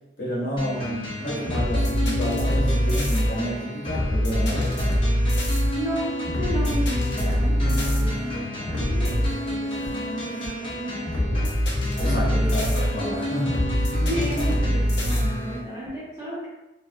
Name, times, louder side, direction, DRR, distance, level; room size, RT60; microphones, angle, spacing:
voice 1, 0.2-4.8 12.0-13.9, equal, 50° left, -7 dB, 0.9 m, -30 dB
sound 1, 0.6-15.6, equal, 30° left, 0.6 m, -33 dB
sound 2, 1.2-15.9, equal, 75° left, 0.7 m, -24 dB
voice 2, 5.8-11.5 12.3-13.3 14.0-16.5, equal, 20° right, -10 dB, 1.1 m, -33 dB
2.8 x 2.4 x 2.6 m, 0.98 s
head